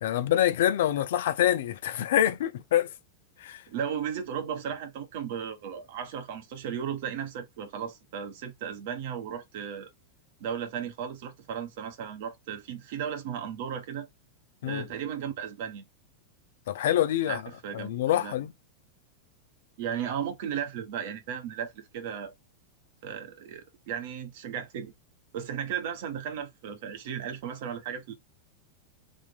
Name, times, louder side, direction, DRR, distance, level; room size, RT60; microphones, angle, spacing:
voice 1, 0.0-2.9 3.4-3.6 14.6-14.8 16.7-17.4 17.7-18.5, left 12 dB, 55° left, 0.6 m, -26 dB
voice 2, 3.7-9.9 10.4-14.1 14.6-15.8 17.3-18.3 19.8-22.3 23.0-24.9 25.3-28.1, right 8 dB, 50° right, 1.3 m, -35 dB
3.7 x 2.7 x 4.2 m
figure-of-eight pair, 90°, 0 cm